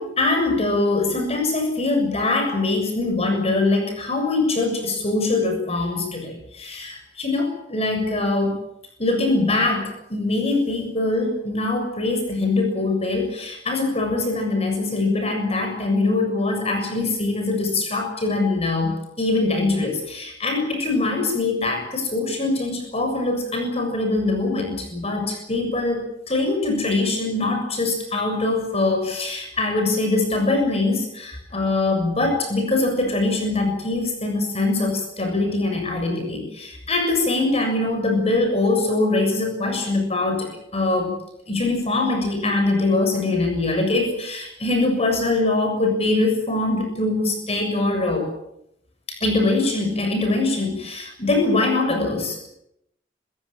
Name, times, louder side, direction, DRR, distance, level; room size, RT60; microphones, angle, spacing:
voice 1, 0.0-8.5 9.0-41.2 41.5-48.3 49.1-52.5, left 2 dB, 35° left, 4 dB, 7.0 m, -23 dB
27.0 x 16.0 x 8.9 m, 0.78 s
head